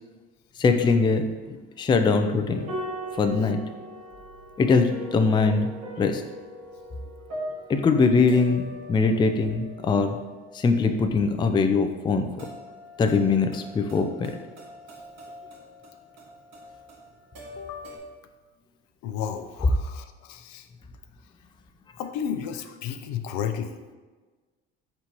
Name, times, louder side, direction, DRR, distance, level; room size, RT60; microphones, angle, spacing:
voice 1, 0.6-1.2 1.8-2.7 3.2-3.6 4.6-5.7 6.0-6.2 7.7-10.2 10.5-12.3 13.0-14.3, left 4 dB, 15° left, 7 dB, 0.4 m, -22 dB
sound 1, 2.5-18.0, equal, 60° right, 1.4 m, -41 dB
voice 2, 17.6-17.9 19.0-20.7 22.0-23.8, left 8 dB, 65° left, 8 dB, 0.5 m, -33 dB
4.3 x 4.0 x 2.9 m, 1.3 s
hypercardioid pair, 75°, 30 cm